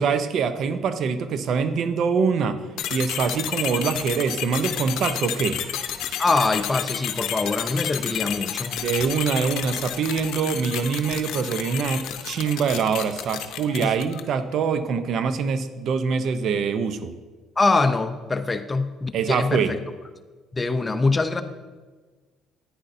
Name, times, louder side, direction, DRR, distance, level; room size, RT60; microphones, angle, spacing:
voice 1, 0.0-2.6 2.9-5.6 8.8-17.1 19.1-19.7, right 6 dB, 60° right, 10 dB, 0.6 m, -24 dB
sound 1, 2.8-14.4, left 10 dB, 75° left, 0.7 m, -31 dB
voice 2, 6.2-8.7 13.8-14.0 17.6-19.8 20.5-21.4, left 3 dB, 25° left, 9 dB, 0.6 m, -23 dB
10.0 x 9.6 x 2.7 m, 1.3 s
supercardioid pair, 80°, 0 cm